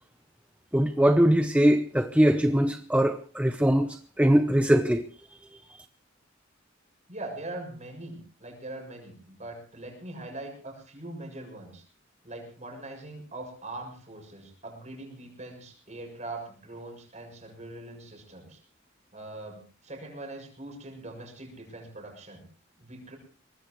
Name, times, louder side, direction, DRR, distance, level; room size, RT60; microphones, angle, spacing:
voice 1, 0.7-3.9 4.2-5.0, equal, 5° right, 0.8 m, -21 dB
voice 2, 7.1-11.8 12.2-18.6 19.1-22.4 22.8-23.2, right 2 dB, 35° right, 6.8 m, -42 dB
23.5 x 19.5 x 3.2 m
head